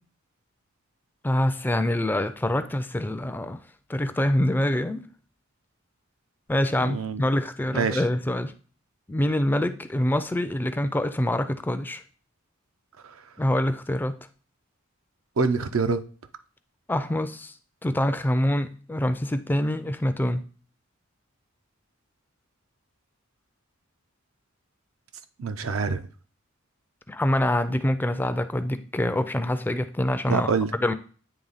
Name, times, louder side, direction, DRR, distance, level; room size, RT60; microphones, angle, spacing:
voice 1, 1.2-3.6 3.9-5.1 6.5-8.5 9.1-12.0 13.4-14.2 16.9-17.5 17.8-20.4 27.1-30.9, left 1 dB, 10° left, 10 dB, 0.3 m, -25 dB
voice 2, 6.8-7.2 7.7-8.0 15.4-16.0 25.4-26.0 30.3-30.7, right 5 dB, 85° right, 9 dB, 0.6 m, -25 dB
9.0 x 3.3 x 4.0 m, 0.40 s
head